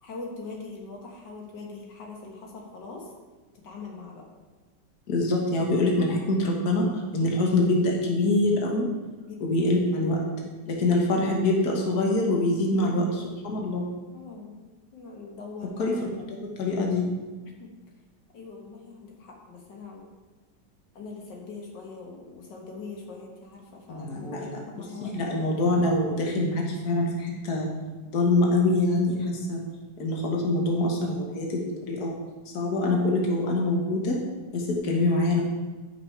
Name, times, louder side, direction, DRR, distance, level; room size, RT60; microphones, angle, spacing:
voice 1, 0.0-3.1 3.6-4.2 9.2-9.8 10.2-10.4 12.8-13.4 14.1-14.7 14.9-16.0 17.5-17.7 18.3-20.1 20.9-25.6, left 3 dB, 90° left, -1 dB, 2.1 m, -42 dB
voice 2, 5.1-8.8 9.4-10.2 10.7-13.0 13.4-13.9 15.8-15.9 16.3-17.1 23.9-24.6 25.0-27.7 28.1-29.6 30.0-32.1 32.5-34.2 34.5-35.4, left 2 dB, 65° left, -1 dB, 1.8 m, -24 dB
10.5 x 5.7 x 4.7 m, 1.3 s
omnidirectional pair, 1.9 m